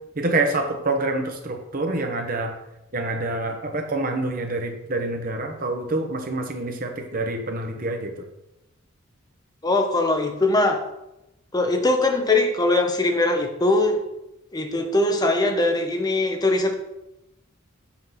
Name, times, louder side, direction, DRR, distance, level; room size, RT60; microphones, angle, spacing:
voice 1, 0.2-2.5 2.9-8.1, right 2 dB, 40° right, 4 dB, 0.9 m, -26 dB
voice 2, 9.6-10.8 11.5-14.0 14.5-16.8, left 2 dB, 20° left, 4 dB, 0.7 m, -21 dB
5.8 x 3.7 x 5.7 m, 0.90 s
head